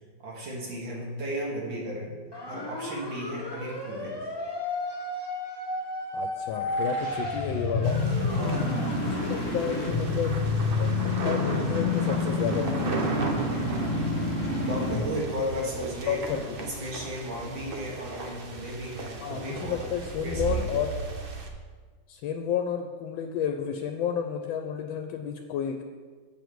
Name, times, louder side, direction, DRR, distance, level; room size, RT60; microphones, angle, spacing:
voice 1, 0.2-2.1 2.5-4.2 8.3-8.7 13.5-14.3 14.6-16.2 16.6-19.8 20.2-20.8, equal, 80° right, -3 dB, 2.5 m, -35 dB
sound 1, 2.3-9.5, left 1 dB, 15° left, 0.9 m, -34 dB
voice 2, 6.1-8.0 8.4-10.4 10.7-13.0 16.0-16.7 19.2-20.9 22.1-25.8, left 8 dB, 85° left, 5 dB, 1.3 m, -31 dB
sound 2, 6.6-15.2, left 3 dB, 45° left, 1.3 m, -28 dB
sound 3, 7.8-21.5, right 3 dB, 55° right, 0.6 m, -36 dB
7.7 x 7.0 x 4.6 m, 1.5 s
omnidirectional pair, 2.1 m